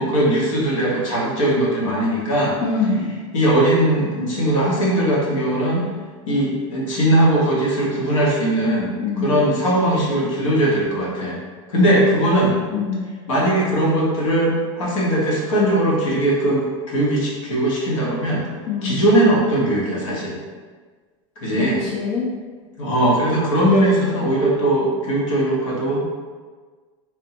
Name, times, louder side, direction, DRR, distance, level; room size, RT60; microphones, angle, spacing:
voice 1, 0.0-2.6 3.3-5.9 6.3-11.4 11.7-12.6 13.3-18.4 18.8-20.4 21.4-21.8 22.8-26.0, right 1 dB, 85° left, -5 dB, 1.1 m, -19 dB
voice 2, 2.6-3.1 9.0-9.5 12.7-13.1 18.7-19.0 21.5-22.3, left 4 dB, 55° left, -4 dB, 0.5 m, -24 dB
3.4 x 2.2 x 2.8 m, 1.4 s
supercardioid pair, 145°, 16 cm